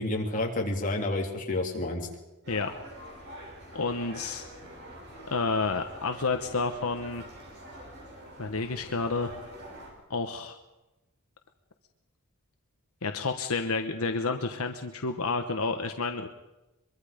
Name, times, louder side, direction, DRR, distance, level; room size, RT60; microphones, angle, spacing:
voice 1, 0.0-2.1, left 2 dB, 35° left, 0 dB, 3.5 m, -29 dB
sound 1, 2.4-9.9, right 1 dB, 50° right, 6.1 m, -46 dB
voice 2, 3.7-4.4 5.3-7.2 8.4-9.3 10.1-10.6 13.0-16.3, left 3 dB, 75° left, 6 dB, 1.2 m, -30 dB
23.5 x 23.5 x 5.2 m, 1.0 s
head